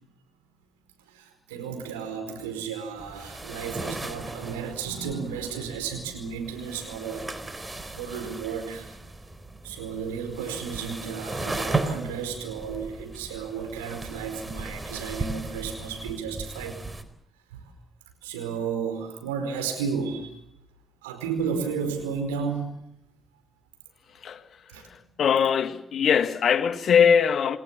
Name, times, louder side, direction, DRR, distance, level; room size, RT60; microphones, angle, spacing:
voice 1, 1.1-7.3 7.9-9.0 9.6-16.8 17.5-17.6 18.2-20.4 21.0-22.7 24.7-24.9, right 6 dB, 85° right, 4.7 m, -33 dB
sound 1, 3.0-17.0, right 2 dB, 25° right, 4.1 m, -36 dB
voice 2, 25.2-27.6, left 7 dB, 60° left, 1.8 m, -21 dB
28.5 x 20.0 x 7.2 m
hypercardioid pair, 40°, 0 cm